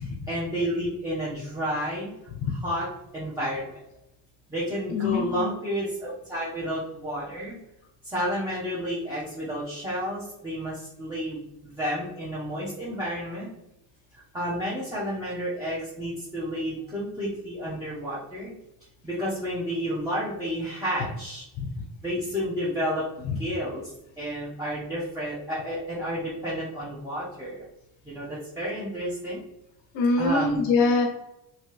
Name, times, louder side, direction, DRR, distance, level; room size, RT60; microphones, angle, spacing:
voice 1, 0.3-2.1 2.5-2.9 3.1-3.7 4.5-7.6 8.0-10.7 11.0-13.5 14.3-18.5 19.0-21.4 22.0-23.8 24.2-27.6 28.1-29.4 30.2-30.6, equal, 5° right, -8 dB, 0.9 m, -31 dB
voice 2, 4.9-5.5 29.9-31.1, left 3 dB, 90° left, 1 dB, 1.0 m, -23 dB
3.1 x 3.0 x 3.2 m, 0.86 s
cardioid pair, 130°, 45 cm